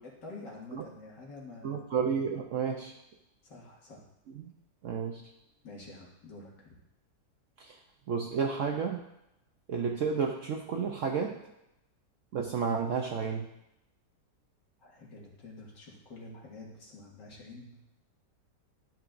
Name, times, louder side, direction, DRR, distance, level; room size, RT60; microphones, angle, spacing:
voice 1, 0.2-1.8 3.4-4.0 5.6-6.7 14.8-17.8, left 2 dB, 75° left, -3 dB, 2.5 m, -48 dB
voice 2, 1.6-3.0 4.3-4.5 4.8-5.3 7.6-7.8 8.1-9.1 9.7-11.5 12.3-13.5, right 6 dB, 70° right, 2 dB, 0.7 m, -31 dB
12.5 x 6.0 x 2.5 m, 0.86 s
omnidirectional pair, 1.9 m